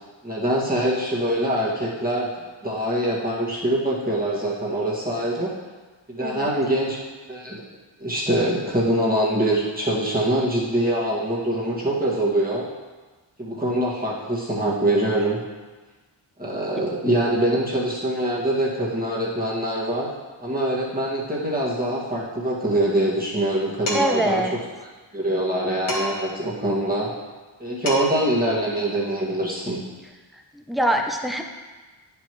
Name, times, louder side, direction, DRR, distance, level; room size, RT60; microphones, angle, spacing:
voice 1, 0.2-2.3 2.6-5.5 6.1-7.0 7.3-7.6 8.0-12.6 13.4-15.4 16.4-20.1 20.4-24.4 25.1-27.1 27.6-29.8, right 1 dB, 20° right, -6 dB, 1.9 m, -24 dB
voice 2, 6.2-6.5 23.9-24.6 30.5-31.4, right 1 dB, ahead, 3 dB, 0.6 m, -24 dB
Dishes pots and pans, 23.9-24.3 25.9-26.4 27.5-27.6 27.9-28.3, left 1 dB, 85° left, 2.1 m, -29 dB
10.0 x 5.5 x 3.1 m, 1.3 s
wide cardioid pair, 85°, 47 cm